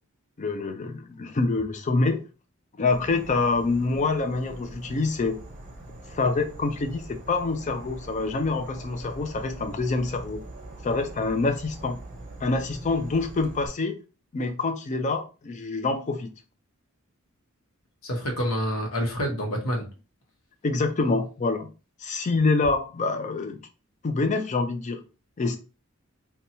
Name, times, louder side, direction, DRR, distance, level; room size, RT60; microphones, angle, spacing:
voice 1, 0.4-2.2 2.8-5.4 6.1-10.4 10.8-12.0 12.4-14.0 14.3-16.3 20.6-21.7 22.0-23.6 24.0-25.0 25.4-25.6, left 3 dB, 35° left, 0.4 m, -26 dB
Insect / Frog, 2.9-13.7, right 2 dB, 35° right, 0.6 m, -43 dB
voice 2, 18.0-19.9, equal, 80° left, 0.9 m, -27 dB
2.8 x 2.2 x 2.7 m
head